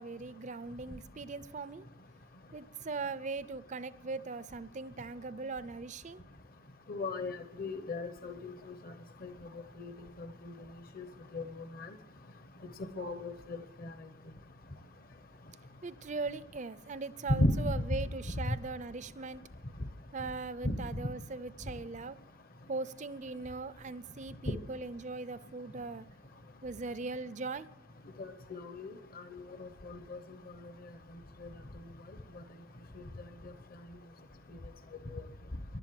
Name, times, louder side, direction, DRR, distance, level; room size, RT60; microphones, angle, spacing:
voice 1, 0.0-1.9 2.5-6.2 15.8-19.4 20.1-22.2 22.7-26.0 26.6-27.7, right 3 dB, 35° right, 15 dB, 0.5 m, -40 dB
voice 2, 6.9-8.7 9.2-9.3 9.8-10.3 11.0-11.1 11.3-11.4 11.8-11.9 13.0-13.9 17.3-17.5 20.6-20.8 28.2-30.2 31.4-31.5 35.1-35.2, left 1 dB, 45° left, 9 dB, 0.9 m, -35 dB
16.0 x 11.5 x 7.7 m, 0.83 s
head